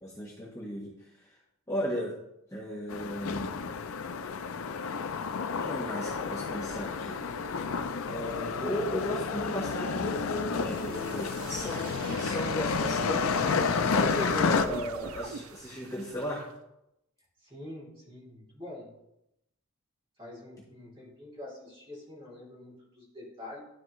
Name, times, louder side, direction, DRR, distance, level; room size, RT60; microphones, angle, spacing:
voice 1, 0.0-1.4 1.7-2.1 2.5-3.6 5.6-7.2 8.1-16.5, equal, 15° left, -6 dB, 1.4 m, -36 dB
sound 1, 2.9-14.7, left 5 dB, 80° left, 0.5 m, -30 dB
sound 2, 9.9-16.5, right 5 dB, 85° right, 0.5 m, -43 dB
voice 2, 17.4-18.9 20.2-23.6, left 1 dB, 25° right, -6 dB, 2.9 m, -46 dB
12.5 x 4.4 x 3.1 m, 0.86 s
head